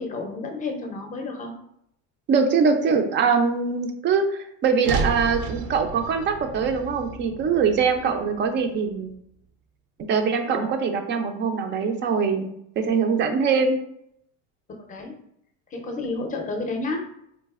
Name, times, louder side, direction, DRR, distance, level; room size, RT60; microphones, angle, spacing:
voice 1, 0.0-1.5 8.0-8.2 10.5-10.7 14.8-15.2 15.7-17.0, left 3 dB, 20° left, 3 dB, 0.6 m, -31 dB
voice 2, 2.3-9.1 10.1-12.5 12.8-13.8, right 5 dB, 30° right, 6 dB, 0.4 m, -23 dB
sound 1, 4.8-9.1, right 4 dB, 75° right, 0.6 m, -32 dB
4.1 x 2.5 x 2.4 m, 0.74 s
supercardioid pair, 125°, 37 cm